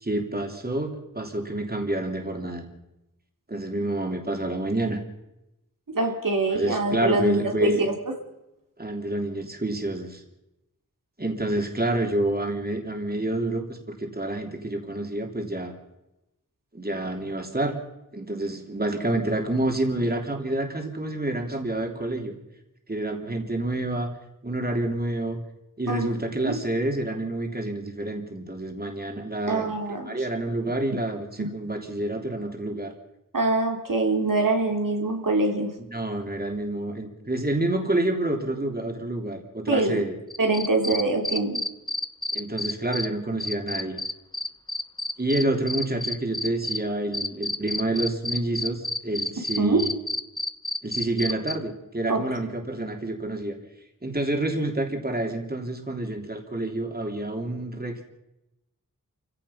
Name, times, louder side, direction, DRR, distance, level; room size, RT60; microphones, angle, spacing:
voice 1, 0.0-2.7 3.5-5.0 6.5-7.8 8.8-10.2 11.2-15.7 16.7-17.8 18.1-22.3 22.9-24.1 24.4-25.4 25.8-29.7 30.1-32.9 35.9-40.1 42.3-43.9 45.2-49.9 50.8-53.5 54.0-58.1, right 1 dB, 30° right, 3 dB, 3.3 m, -28 dB
voice 2, 5.9-7.7 25.9-26.1 26.4-26.5 29.5-30.2 31.4-31.5 33.3-35.7 39.7-40.0 40.4-41.6 49.6-49.8 52.1-52.2, right 2 dB, 80° right, 2 dB, 3.2 m, -24 dB
sound 1, 40.3-43.1 43.4-46.8 47.1-51.5, left 2 dB, 15° left, 1.0 m, -29 dB
28.0 x 16.5 x 5.8 m, 0.92 s
wide cardioid pair, 70°, 32 cm